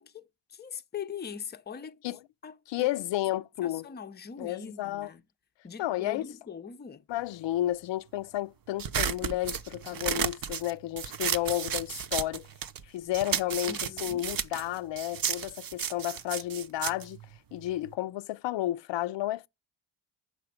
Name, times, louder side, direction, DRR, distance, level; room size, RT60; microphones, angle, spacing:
voice 1, 0.0-2.0 2.4-2.9 3.6-5.2 5.6-7.0 13.6-14.2, left 7 dB, 20° left, 0.6 m, -42 dB
voice 2, 2.7-3.9 4.4-5.1 5.8-6.3 7.1-12.5 12.9-17.2 17.5-19.5, left 14 dB, 60° left, 0.5 m, -32 dB
sound 1, 8.8-12.8 13.1-17.9, right 8 dB, 45° right, 0.8 m, -33 dB
5.8 x 4.8 x 5.0 m
supercardioid pair, 50°, 49 cm